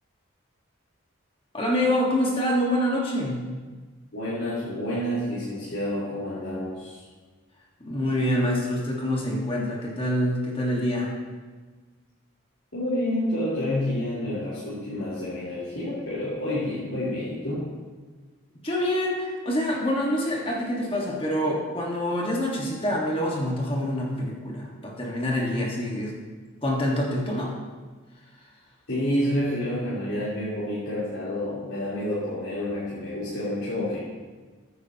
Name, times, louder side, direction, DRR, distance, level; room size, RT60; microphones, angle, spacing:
voice 1, 1.5-3.4 7.8-11.1 18.6-26.1 26.6-27.5, left 1 dB, 25° left, -2 dB, 1.5 m, -26 dB
voice 2, 4.1-7.0 12.7-17.7 28.9-34.0, left 1 dB, 75° left, -11 dB, 3.7 m, -29 dB
14.5 x 9.6 x 2.9 m, 1.4 s
head